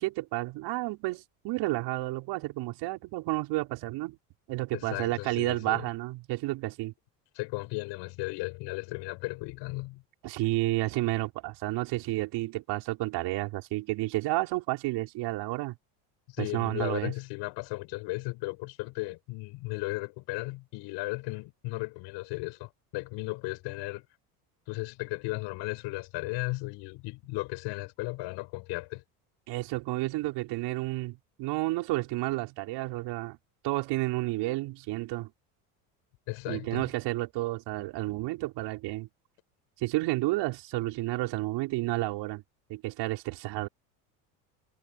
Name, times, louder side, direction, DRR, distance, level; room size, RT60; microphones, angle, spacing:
voice 1, 0.0-4.2 4.5-6.9 10.2-15.7 16.4-17.1 29.5-33.4 33.6-35.3 36.5-39.1 39.8-42.4 42.7-43.7, right 20 dB, 65° right, 6.2 m, -31 dB
voice 2, 4.7-5.8 7.3-10.0 16.4-24.0 24.7-29.0 36.3-36.9, left 23 dB, 65° left, 5.6 m, -35 dB
supercardioid pair, 90°, 45 cm